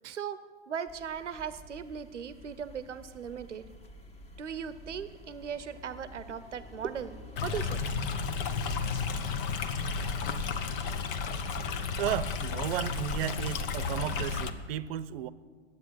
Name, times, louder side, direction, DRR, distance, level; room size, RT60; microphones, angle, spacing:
voice 1, 0.1-0.4 0.7-3.6 4.4-7.8, right 7 dB, 85° right, 13 dB, 0.8 m, -38 dB
sound 1, 0.9-14.7, left 1 dB, 20° left, 1.4 m, -48 dB
Stream, 7.4-14.5, left 5 dB, 50° left, 1.2 m, -33 dB
voice 2, 12.0-15.3, right 11 dB, 55° right, 16 dB, 0.8 m, -34 dB
12.5 x 8.4 x 8.8 m, 1.5 s
hypercardioid pair, 110°, 35 cm